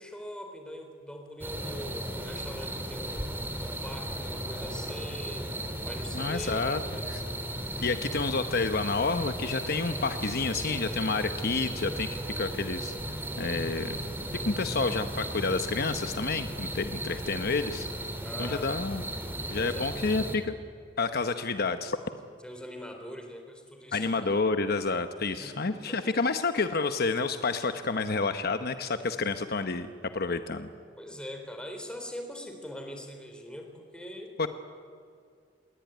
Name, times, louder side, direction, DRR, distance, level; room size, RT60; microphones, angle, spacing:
voice 1, 0.0-3.3 3.6-5.5 5.8-7.2 18.2-18.7 19.5-19.9 22.4-24.2 25.4-26.1 31.0-34.4, equal, 5° left, 4 dB, 4.0 m, -42 dB
sound 1, 1.4-20.4, right 1 dB, 10° right, 2.9 m, -36 dB
voice 2, 6.1-6.8 7.1-7.2 7.8-14.0 14.4-17.9 18.4-19.0 19.5-20.6 21.0-22.0 23.9-30.7 34.4-34.5, left 4 dB, 55° left, 9 dB, 1.0 m, -29 dB
28.0 x 21.5 x 9.4 m, 2.3 s
head